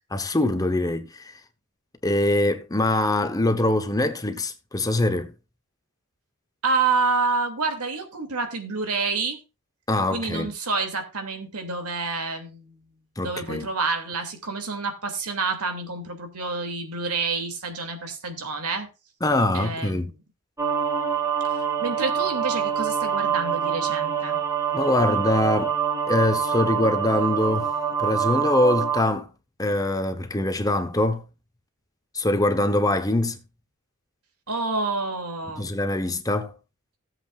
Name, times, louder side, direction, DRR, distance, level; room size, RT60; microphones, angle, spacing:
voice 1, 0.1-1.3 2.0-5.3 9.9-10.5 13.2-13.7 19.2-20.1 24.7-25.8 26.1-27.7 28.0-29.3 29.6-31.2 32.1-33.4 35.6-36.5, left 1 dB, 15° left, 1.0 m, -23 dB
voice 2, 6.6-9.4 10.1-12.8 13.2-18.9 19.5-20.2 21.4-24.4 34.5-35.7, right 4 dB, 90° right, 2.6 m, -28 dB
sound 1, 20.6-29.0, right 8 dB, 15° right, 1.7 m, -25 dB
16.5 x 7.7 x 2.5 m
head